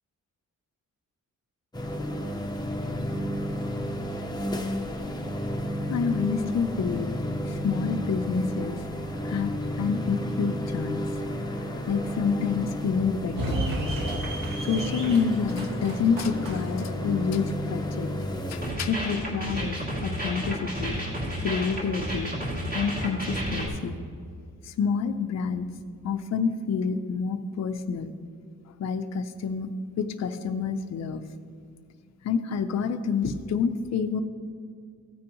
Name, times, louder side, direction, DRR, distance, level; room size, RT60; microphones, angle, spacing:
sound 1, 1.7-18.7, equal, 15° left, 0.7 m, -32 dB
voice 1, 5.9-7.1 7.5-8.8 9.2-11.0 11.9-13.7 14.6-18.1 18.5-19.8 20.0-21.0 21.4-22.3 22.7-24.0 24.6-25.7 26.0-28.1 28.8-29.7 30.0-31.2 32.2-34.2, left 5 dB, 55° left, 7 dB, 0.5 m, -28 dB
sound 2, 13.4-18.4, right 1 dB, 80° right, 1.9 m, -34 dB
sound 3, 18.6-23.7, equal, 30° right, 2.4 m, -31 dB
15.0 x 9.6 x 3.0 m, 2.3 s
wide cardioid pair, 175°, 32 cm